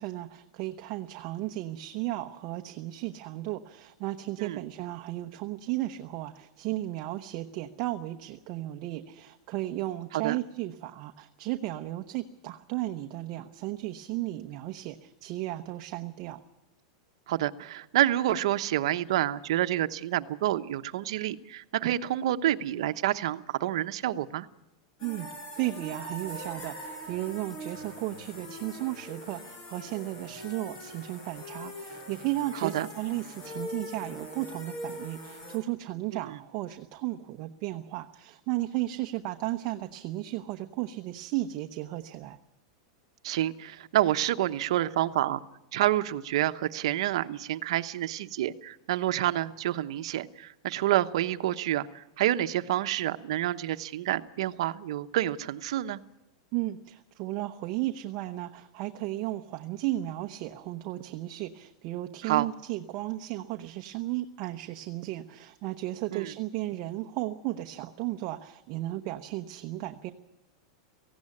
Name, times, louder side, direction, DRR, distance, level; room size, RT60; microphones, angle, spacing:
voice 1, 0.0-16.4 25.0-25.3 25.6-42.4 56.5-70.1, right 16 dB, 40° right, 5 dB, 0.9 m, -34 dB
voice 2, 17.3-24.5 32.6-32.9 36.3-36.4 43.2-45.4 45.7-56.0 62.2-62.5 66.1-66.3, right 13 dB, 65° right, 10 dB, 1.0 m, -28 dB
sound 1, 25.0-35.6, equal, 35° left, 5.6 m, -42 dB
18.0 x 16.0 x 9.8 m, 0.95 s
supercardioid pair, 160°, 3 cm